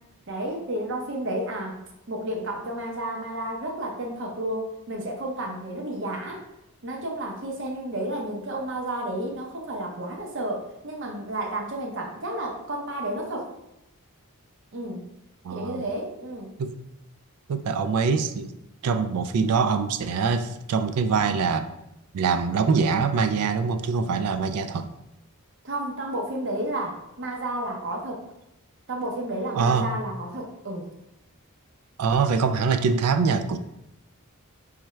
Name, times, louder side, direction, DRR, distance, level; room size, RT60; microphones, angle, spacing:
voice 1, 0.3-6.4 6.8-13.5 14.7-15.1 15.5-16.5 25.6-28.2 28.9-30.9, right 1 dB, 55° right, 1 dB, 0.8 m, -31 dB
voice 2, 15.4-15.8 16.6-16.8 17.5-18.5 18.8-21.7 22.1-24.9 29.5-29.9 32.0-33.6, right 5 dB, 90° right, 10 dB, 0.4 m, -24 dB
4.5 x 3.5 x 3.1 m, 0.87 s
head